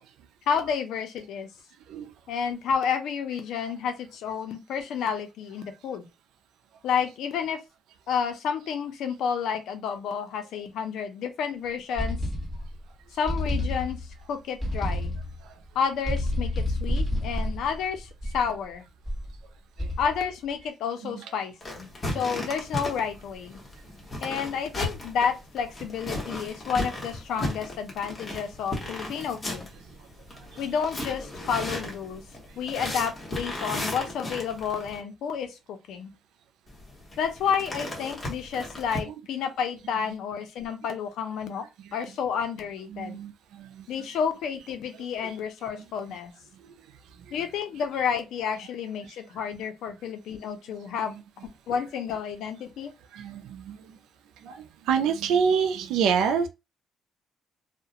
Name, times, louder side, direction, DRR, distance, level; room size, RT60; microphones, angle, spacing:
voice 1, 0.5-1.5 2.3-6.1 6.8-7.6 8.1-12.2 13.1-14.0 14.3-15.2 15.7-18.8 20.0-23.6 24.2-29.7 30.6-32.2 32.6-36.1 37.2-43.2 43.9-46.3 47.3-51.1 51.7-52.9, left 7 dB, 80° left, 0.5 m, -30 dB
sound 1, 12.0-12.8 13.3-14.2 14.6-15.4 16.0-18.6 19.0-19.4 19.8-20.3, left 1 dB, 5° left, 1.2 m, -29 dB
sound 2, 21.6-35.0 36.7-39.0, left 1 dB, 30° left, 1.1 m, -35 dB
voice 2, 29.8-30.6 32.5-32.6 39.0-39.1 41.8-42.0 42.9-43.9 45.2-45.3 46.5-47.4 53.1-54.0 54.4-56.5, right 6 dB, 90° right, 0.3 m, -29 dB
2.3 x 2.1 x 2.8 m
cardioid pair, 90°, 0 cm